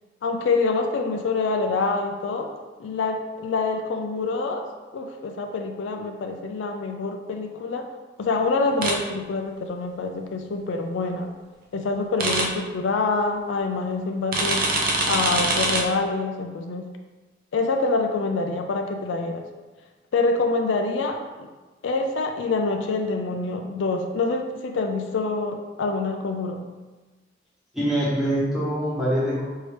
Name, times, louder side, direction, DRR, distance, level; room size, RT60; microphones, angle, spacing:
voice 1, 0.2-2.5 2.8-4.6 4.9-7.8 8.2-11.3 11.7-14.7 15.1-16.9 17.5-19.4 20.1-21.2 21.8-26.6, left 3 dB, 80° left, 4 dB, 0.4 m, -26 dB
sound 1, 8.8-8.9 12.2-12.4 14.3-15.8, right 2 dB, 50° right, 0.6 m, -23 dB
voice 2, 27.7-29.4, right 1 dB, ahead, -9 dB, 1.2 m, -24 dB
4.6 x 2.7 x 3.2 m, 1.2 s
head